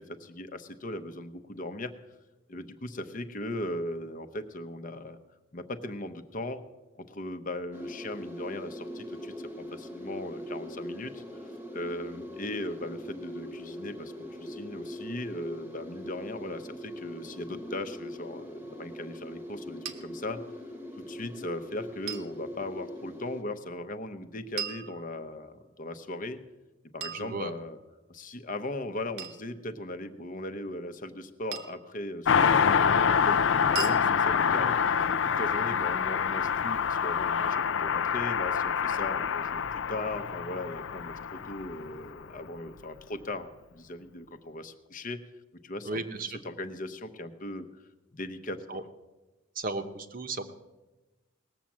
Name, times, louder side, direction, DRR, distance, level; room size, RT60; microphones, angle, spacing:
voice 1, 0.0-1.9 2.5-5.2 5.5-6.6 7.0-14.1 14.4-20.4 21.0-26.4 26.9-27.8 28.1-34.7 35.2-45.2 45.6-46.0 46.3-47.7 48.1-48.9, left 1 dB, 40° left, 9 dB, 0.8 m, -38 dB
sound 1, 7.7-23.4, equal, 10° right, 1.0 m, -41 dB
sound 2, 19.9-20.0 22.1-22.3 24.6-25.5 27.0-27.9 29.2-29.5 31.5-31.9 33.8-34.0, right 7 dB, 70° right, 1.2 m, -38 dB
voice 2, 27.1-27.5 45.8-46.3 48.7-48.8 49.6-50.4, right 3 dB, 40° right, 8 dB, 0.9 m, -34 dB
Car passing by, 32.2-42.2 42.5-42.6, left 7 dB, 60° left, 0.4 m, -26 dB
18.5 x 7.4 x 7.3 m, 1.1 s
head